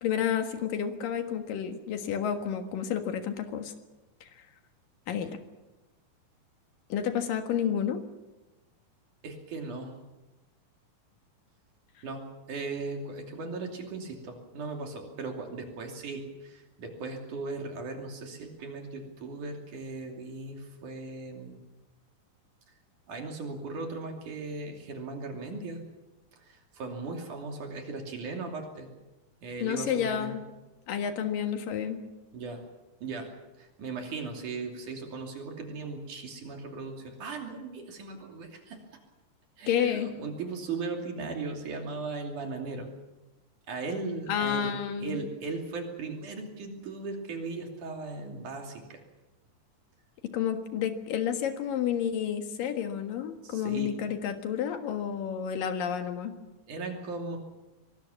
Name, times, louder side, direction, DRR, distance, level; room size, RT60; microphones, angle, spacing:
voice 1, 0.0-3.7 5.1-5.4 6.9-8.0 29.6-30.4 30.9-32.0 39.7-40.1 44.3-45.2 50.3-56.3, left 8 dB, 75° left, 7 dB, 3.3 m, -30 dB
voice 2, 9.2-9.9 12.0-21.6 23.1-25.8 26.3-28.9 29.4-30.4 32.3-32.6 33.0-38.8 39.6-42.9 43.7-49.0 53.4-54.0 56.7-57.4, right 3 dB, 65° right, 2 dB, 4.2 m, -38 dB
24.0 x 20.0 x 7.2 m, 1.1 s
omnidirectional pair, 3.9 m